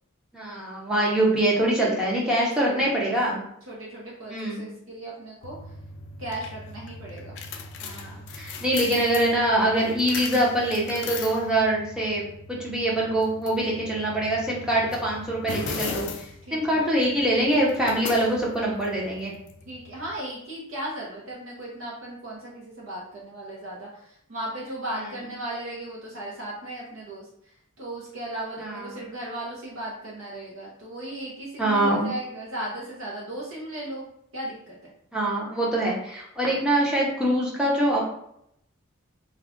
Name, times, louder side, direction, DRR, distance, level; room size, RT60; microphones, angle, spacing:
voice 1, 0.3-3.4 4.3-4.7 7.8-19.3 28.6-29.0 31.6-32.1 35.1-38.0, right 1 dB, 5° right, -5 dB, 0.6 m, -24 dB
voice 2, 2.2-2.9 3.7-5.7 6.2-7.4 16.5-16.8 19.7-34.0 34.3-34.9 36.5-36.6, right 1 dB, 65° right, -5 dB, 0.6 m, -36 dB
sound 1, 5.4-20.2, left 4 dB, 55° left, 0.3 m, -39 dB
2.3 x 2.1 x 3.6 m, 0.73 s
head